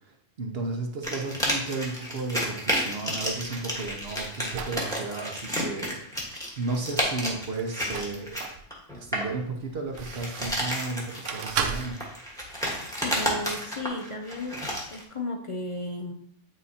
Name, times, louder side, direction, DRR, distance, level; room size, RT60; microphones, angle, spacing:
voice 1, 0.0-8.4 8.9-12.0, right 3 dB, 55° right, 2 dB, 1.0 m, -34 dB
sound 1, 1.0-9.3 9.9-15.0, equal, 5° left, 1.2 m, -31 dB
sound 2, 3.4-4.8 7.6-8.6 9.2-10.7 11.3-11.9, right 6 dB, 90° right, 1.0 m, -34 dB
voice 2, 13.0-16.1, left 2 dB, 45° left, 3 dB, 0.4 m, -34 dB
9.0 x 4.1 x 2.8 m, 0.69 s
omnidirectional pair, 1.2 m